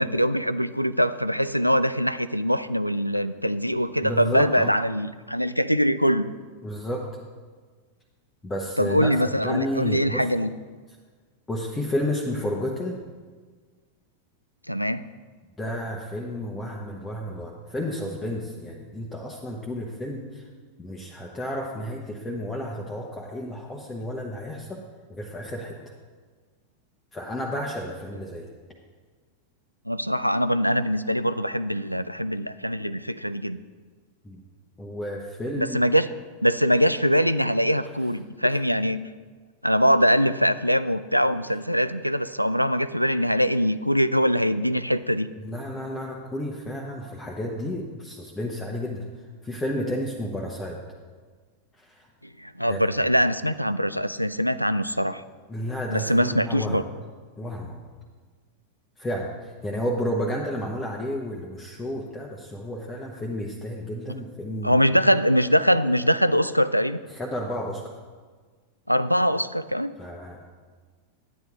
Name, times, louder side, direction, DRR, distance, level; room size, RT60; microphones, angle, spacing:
voice 1, 0.0-6.3 8.8-10.5 14.7-15.1 29.9-33.6 35.6-36.1 36.4-39.0 39.6-45.3 52.4-55.2 55.9-56.8 64.6-67.0 68.9-69.9, equal, 90° right, 14 dB, 0.3 m, -23 dB
voice 2, 4.0-4.7 6.6-7.1 8.4-10.3 11.5-13.0 15.6-20.4 20.8-24.8 25.1-25.8 27.1-28.5 34.2-34.4 34.8-35.8 45.4-49.0 49.4-50.8 51.8-52.1 52.7-52.8 55.5-56.8 57.4-57.8 59.0-64.8 67.1-67.9 70.0-70.5, equal, 15° left, -2 dB, 1.0 m, -31 dB
10.5 x 9.3 x 3.6 m, 1.5 s
figure-of-eight pair, 90°, 0 cm